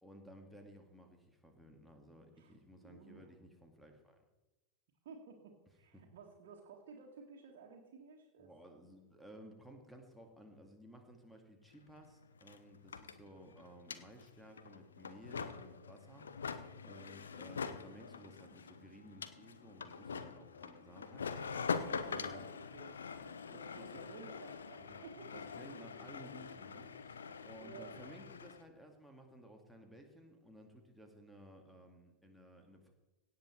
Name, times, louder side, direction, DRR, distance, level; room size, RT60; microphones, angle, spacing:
voice 1, 0.0-4.2 5.9-6.0 8.4-21.7 22.0-22.5 23.2-24.0 24.8-25.1 25.3-32.9, right 1 dB, ahead, 3 dB, 2.2 m, -57 dB
voice 2, 2.8-3.3 5.0-8.5 18.4-18.5 22.1-23.0 23.5-25.4 27.6-27.9, right 5 dB, 55° right, -2 dB, 1.9 m, -54 dB
sound 1, 11.7-11.8 12.0-28.6, left 5 dB, 70° left, 0.7 m, -44 dB
17.0 x 7.6 x 4.5 m, 1.1 s
figure-of-eight pair, 90°, 0 cm